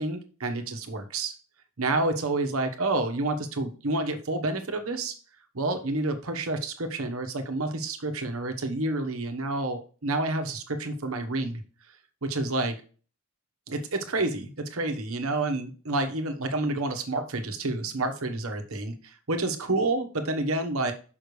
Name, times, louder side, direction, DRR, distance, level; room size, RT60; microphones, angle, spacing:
voice 1, 0.0-1.3 1.8-5.1 5.5-11.6 12.2-12.7 13.7-20.9, right 2 dB, 75° right, 6 dB, 1.1 m, -29 dB
6.8 x 5.6 x 3.2 m, 0.38 s
head